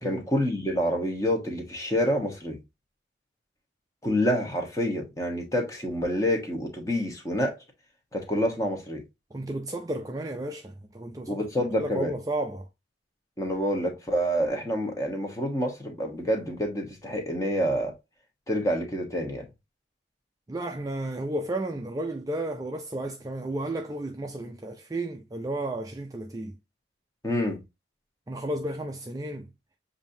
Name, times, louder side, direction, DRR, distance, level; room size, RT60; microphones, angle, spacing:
voice 1, 0.0-2.6 4.0-7.5 8.1-9.0 11.3-12.1 13.4-17.9 18.5-19.5 27.2-27.6, equal, 15° left, 1.1 m, -27 dB
voice 2, 9.3-11.4 11.8-12.7 20.5-26.5 28.3-29.5, right 1 dB, 20° right, 0.3 m, -33 dB
7.1 x 2.7 x 2.6 m
head